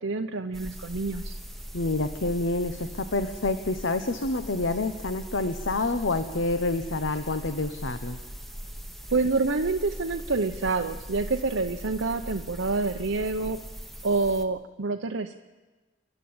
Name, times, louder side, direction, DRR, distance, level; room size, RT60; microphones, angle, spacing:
voice 1, 0.0-1.3 9.1-13.6 14.0-15.4, right 3 dB, 80° right, 5 dB, 0.8 m, -27 dB
sound 1, 0.5-14.5, equal, ahead, 1.1 m, -40 dB
voice 2, 1.7-8.2, left 2 dB, 75° left, 9 dB, 1.0 m, -28 dB
28.5 x 11.5 x 8.8 m, 1.3 s
head